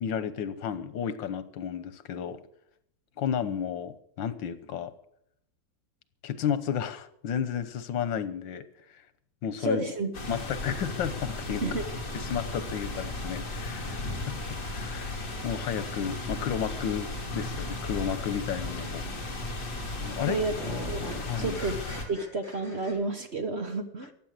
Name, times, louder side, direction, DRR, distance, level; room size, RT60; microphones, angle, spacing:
voice 1, 0.0-2.4 3.2-4.9 6.2-9.0 9.4-9.8 10.3-11.6 12.1-14.4 14.7-19.1 20.0-20.4 21.3-21.6, left 8 dB, 85° left, 13 dB, 1.7 m, -32 dB
voice 2, 9.6-10.1 11.6-11.9 20.2-20.5 20.9-21.0 21.4-21.8 22.1-24.1, right 2 dB, 40° right, 7 dB, 1.2 m, -30 dB
sound 1, 10.1-22.0, left 2 dB, 45° left, 2.7 m, -35 dB
sound 2, 20.5-22.9, left 1 dB, 30° left, 5.5 m, -42 dB
15.0 x 9.3 x 7.6 m, 0.72 s
omnidirectional pair, 2.0 m